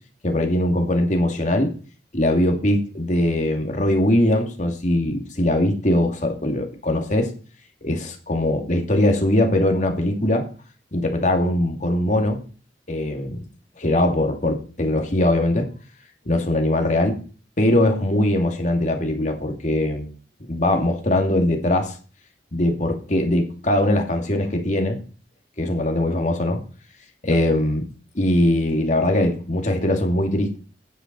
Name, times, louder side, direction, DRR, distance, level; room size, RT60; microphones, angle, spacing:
voice 1, 0.2-1.7 2.1-7.3 7.8-10.5 10.9-12.4 12.9-13.4 13.8-15.7 16.3-17.2 17.6-20.1 20.5-22.0 22.5-25.0 25.6-26.6 27.2-27.9 28.1-30.6, left 1 dB, 45° left, 3 dB, 2.3 m, -21 dB
9.8 x 6.9 x 5.9 m, 0.37 s
head